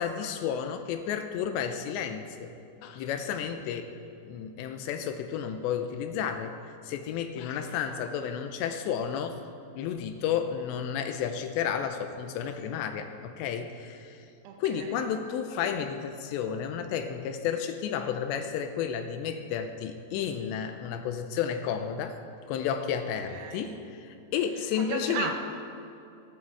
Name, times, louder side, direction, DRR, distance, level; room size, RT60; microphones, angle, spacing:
voice 1, 0.0-2.5 2.8-3.9 4.2-6.6 6.8-9.4 9.8-14.3 14.6-22.2 22.5-25.3, left 8 dB, 85° left, 7 dB, 3.0 m, -32 dB
voice 2, 7.5-8.0 14.4-15.0 23.3-23.8 24.7-25.3, right 7 dB, 75° right, 3 dB, 3.2 m, -37 dB
17.0 x 15.0 x 4.7 m, 2.6 s
omnidirectional pair, 5.0 m